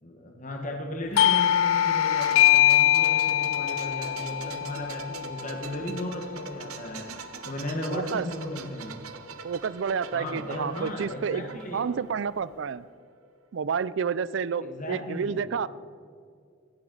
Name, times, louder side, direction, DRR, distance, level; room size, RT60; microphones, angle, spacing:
voice 1, 0.0-7.1 7.4-9.0 10.1-11.9 14.6-15.4, left 1 dB, 35° left, 2 dB, 1.3 m, -35 dB
Doorbell, 1.2-6.4, left 12 dB, 75° left, 0.4 m, -23 dB
sound 1, 2.2-12.8 13.1-13.3, right 5 dB, 85° right, 0.8 m, -43 dB
voice 2, 7.9-8.3 9.4-12.8 13.5-15.7, right 6 dB, 60° right, 18 dB, 0.4 m, -30 dB
15.5 x 9.1 x 3.9 m, 2.3 s
head